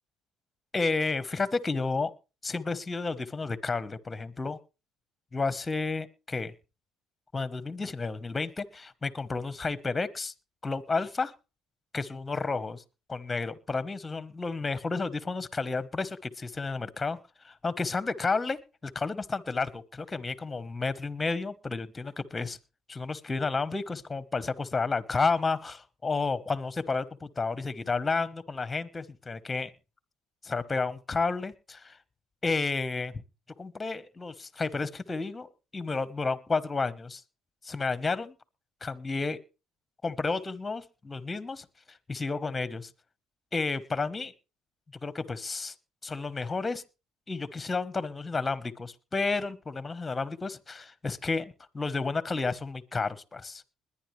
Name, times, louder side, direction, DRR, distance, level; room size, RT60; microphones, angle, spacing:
voice 1, 0.7-2.1 2.4-4.6 5.3-6.5 7.3-10.3 10.6-11.3 11.9-12.8 13.1-17.2 17.4-22.6 22.9-29.7 30.4-32.0 32.4-33.1 33.6-37.2 37.6-38.4 38.8-39.4 40.0-42.9 43.5-44.3 45.0-45.7 46.0-46.8 47.3-53.6, left 4 dB, 20° left, 15 dB, 1.2 m, -31 dB
21.0 x 10.0 x 3.3 m, 0.31 s
supercardioid pair, 90°, 0 cm